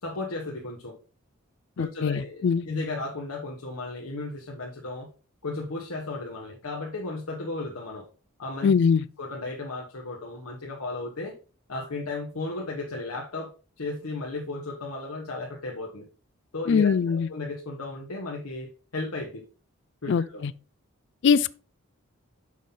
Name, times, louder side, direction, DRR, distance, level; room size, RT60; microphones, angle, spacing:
voice 1, 0.0-1.0 1.8-5.1 5.4-8.1 8.4-8.7 9.2-11.3 11.7-13.5 13.8-16.1 16.5-19.4 20.0-20.4, left 2 dB, 90° left, 1.2 m, -35 dB
voice 2, 1.8-2.7 8.6-9.0 16.7-17.3 20.1-20.5 21.2-21.6, left 6 dB, 55° left, 0.3 m, -22 dB
6.3 x 5.6 x 3.7 m
head